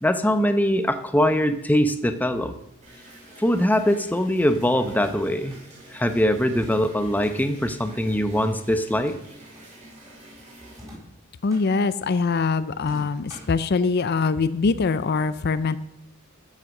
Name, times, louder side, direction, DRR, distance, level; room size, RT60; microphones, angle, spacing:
voice 1, 0.0-2.5 3.4-5.6 5.9-9.2, equal, 10° left, 9 dB, 0.8 m, -22 dB
sound 1, 2.8-10.8, right 1 dB, 35° right, 5.4 m, -48 dB
sound 2, 4.9-5.6 6.5-7.4 8.8-9.7 10.7-11.7 12.8-13.6, equal, 15° right, 5.6 m, -45 dB
voice 2, 11.4-15.8, left 4 dB, 50° left, 14 dB, 0.5 m, -23 dB
14.0 x 7.4 x 6.5 m, 0.81 s
head